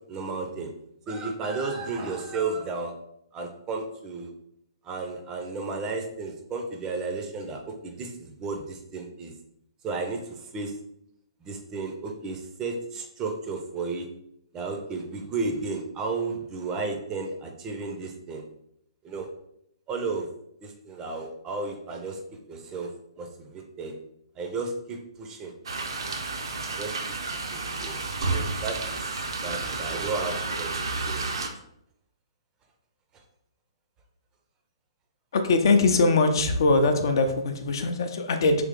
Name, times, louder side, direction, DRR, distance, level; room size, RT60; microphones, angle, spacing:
voice 1, 0.1-0.7 1.1-2.9 3.3-4.3 4.8-9.3 9.8-10.7 11.4-14.1 14.5-18.4 19.0-19.3 19.9-20.3 20.6-22.2 22.5-22.9 23.2-23.9 24.4-25.5 26.8-26.9 27.3-28.0 28.3-29.0 29.4-30.7 31.1-31.2, right 3 dB, 20° right, 4 dB, 0.5 m, -33 dB
sound 1, 25.6-31.5, right 3 dB, 65° right, 0.6 m, -31 dB
voice 2, 35.3-38.6, left 3 dB, 55° left, 6 dB, 0.5 m, -22 dB
3.3 x 3.0 x 3.6 m, 0.77 s
figure-of-eight pair, 125°, 3 cm